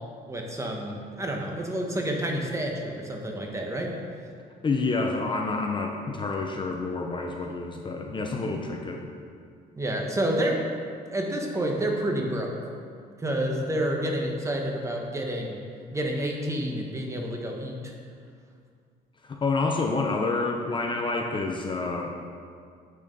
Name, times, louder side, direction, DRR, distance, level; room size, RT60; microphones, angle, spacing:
voice 1, 0.3-3.9 8.3-8.5 9.8-10.6 11.1-12.5 13.2-15.6 15.9-17.9, right 1 dB, 15° right, 1 dB, 1.3 m, -29 dB
voice 2, 4.6-9.1 19.2-22.1, left 3 dB, 30° left, 2 dB, 0.8 m, -28 dB
8.4 x 6.6 x 5.3 m, 2.2 s
cardioid pair, 110°, 17 cm